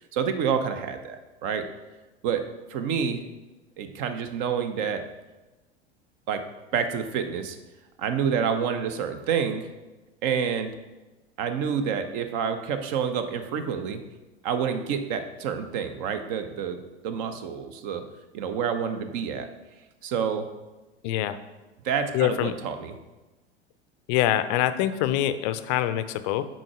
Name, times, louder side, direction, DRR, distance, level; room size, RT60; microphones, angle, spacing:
voice 1, 0.1-1.7 2.2-3.2 3.8-5.1 6.3-6.4 6.7-7.6 8.0-9.7 10.2-10.7 11.4-14.0 14.4-16.8 17.0-18.0 18.3-19.5 20.0-20.5 21.8-22.9, right 7 dB, 45° right, 8 dB, 0.7 m, -28 dB
voice 2, 21.0-21.4 22.1-22.5 24.1-26.5, left 12 dB, 45° left, 12 dB, 0.5 m, -25 dB
6.2 x 4.4 x 4.9 m, 1.1 s
figure-of-eight pair, 80°, 32 cm